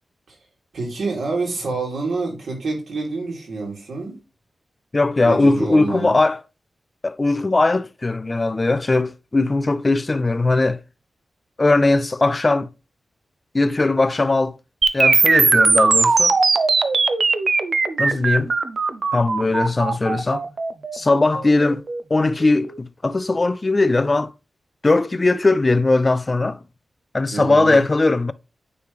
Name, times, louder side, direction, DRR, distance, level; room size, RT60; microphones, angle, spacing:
voice 1, 0.7-4.2 5.2-6.2 27.3-27.9, right 3 dB, 85° right, 2.7 m, -27 dB
voice 2, 4.9-6.4 7.0-10.8 11.6-12.7 13.5-14.5 14.9-16.3 18.0-18.5 19.1-20.4 20.9-21.8 22.1-24.3 24.8-26.6 27.1-28.3, left 2 dB, 25° left, 0.3 m, -19 dB
sound 1, 14.8-22.8, right 4 dB, 45° right, 0.5 m, -19 dB
9.4 x 3.2 x 3.4 m
wide cardioid pair, 155°, 0 cm